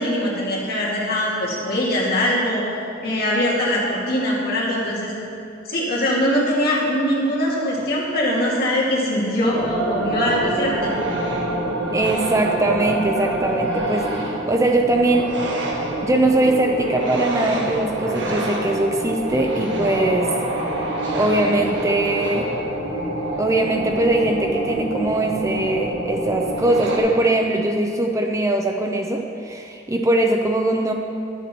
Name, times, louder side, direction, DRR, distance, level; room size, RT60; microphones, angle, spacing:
voice 1, 0.0-2.8 3.0-5.1 5.6-10.9, equal, 55° left, -5 dB, 2.4 m, -22 dB
sound 1, 9.3-27.0, right 1 dB, 65° right, 1.5 m, -26 dB
voice 2, 11.9-15.3 16.0-20.3 21.1-22.5 23.4-30.9, right 2 dB, 15° right, 3 dB, 0.5 m, -21 dB
11.0 x 8.2 x 4.4 m, 2.7 s
head